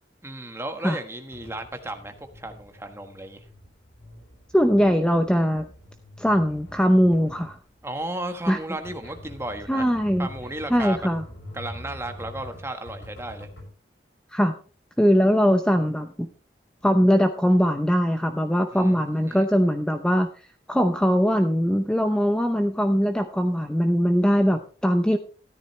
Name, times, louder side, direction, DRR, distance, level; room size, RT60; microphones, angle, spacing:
voice 1, 0.2-3.4 7.8-9.9 10.2-11.0 11.5-13.5 18.7-19.4, right 1 dB, 15° right, 6 dB, 1.4 m, -34 dB
sound 1, 1.3-13.7, left 1 dB, 75° left, 6.8 m, -45 dB
voice 2, 4.5-5.7 6.2-7.6 8.5-8.6 9.7-10.3 10.7-11.2 14.3-14.5 15.0-16.3 16.8-25.2, equal, 5° left, 7 dB, 0.7 m, -21 dB
13.5 x 12.5 x 3.2 m, 0.39 s
head